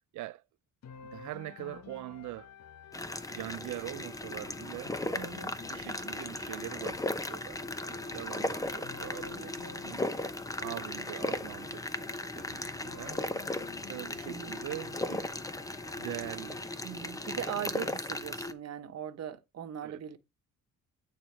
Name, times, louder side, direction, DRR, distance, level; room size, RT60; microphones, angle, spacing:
sound 1, 0.8-16.9, left 7 dB, 60° left, 1.0 m, -51 dB
voice 1, 1.1-2.5 3.3-5.0 5.7-9.4 9.8-10.0 10.6-13.2 13.9-15.3 16.0-16.6 19.8-20.0, right 16 dB, 75° right, 0.5 m, -43 dB
sound 2, 2.9-18.5, left 2 dB, 10° left, 0.8 m, -37 dB
voice 2, 5.2-5.5 9.3-9.5 14.3-14.5 16.8-20.2, right 9 dB, 55° right, 1.2 m, -40 dB
9.6 x 4.5 x 4.5 m
cardioid pair, 90°, 30 cm